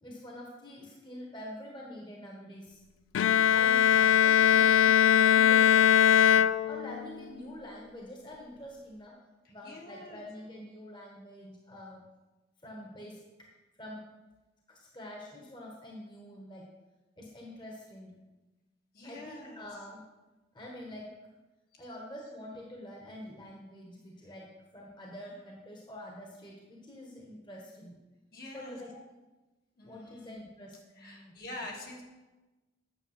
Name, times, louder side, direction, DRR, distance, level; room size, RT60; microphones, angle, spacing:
voice 1, 0.0-2.8 3.5-6.1 6.6-9.1 9.5-12.0 12.6-13.5 13.8-14.1 14.7-16.7 17.2-18.1 19.0-20.0 20.5-21.1 21.8-24.5 24.7-28.0 28.5-29.0 29.8-31.3, left 1 dB, 25° left, -2 dB, 1.4 m, -46 dB
Bowed string instrument, 3.1-7.2, left 9 dB, 85° left, 0.3 m, -21 dB
voice 2, 9.4-10.2 18.9-19.7 21.7-21.8 24.2-24.3 28.3-28.8 29.8-30.4 31.0-32.0, left 1 dB, 50° left, -1 dB, 1.9 m, -46 dB
9.2 x 7.0 x 5.9 m, 1.1 s
head